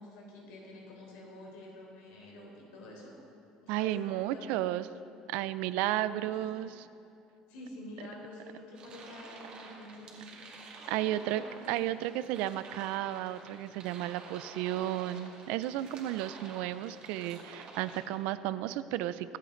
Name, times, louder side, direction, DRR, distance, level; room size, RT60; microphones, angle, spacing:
voice 1, 0.0-3.1 3.7-4.7 6.1-6.7 7.5-10.5 10.8-12.1, left 1 dB, 90° left, -2 dB, 3.9 m, -48 dB
voice 2, 3.7-4.9 5.3-6.8 10.9-11.4 11.7-19.4, right 14 dB, 80° right, 14 dB, 0.5 m, -33 dB
sound 1, 8.7-18.0, right 4 dB, 45° right, 2.3 m, -50 dB
24.0 x 8.5 x 3.9 m, 2.6 s
cardioid pair, 135°, 2 cm